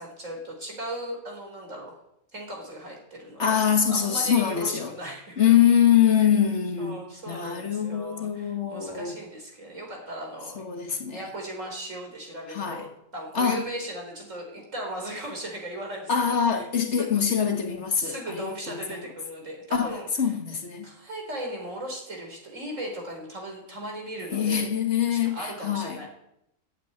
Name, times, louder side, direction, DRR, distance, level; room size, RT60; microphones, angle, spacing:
voice 1, 0.0-1.9 2.3-5.6 6.1-6.3 6.8-12.9 13.1-16.7 17.0-17.2 18.0-20.4 20.8-24.7 25.1-26.2, right 1 dB, 75° right, 4.7 m, -37 dB
voice 2, 3.4-4.9 5.4-7.0 7.3-9.2 10.6-11.2 12.5-12.8 13.4-13.6 16.1-18.5 19.7-19.9 20.2-20.9 24.3-26.0, left 8 dB, 60° left, 1.7 m, -23 dB
11.5 x 8.0 x 9.7 m
omnidirectional pair, 1.4 m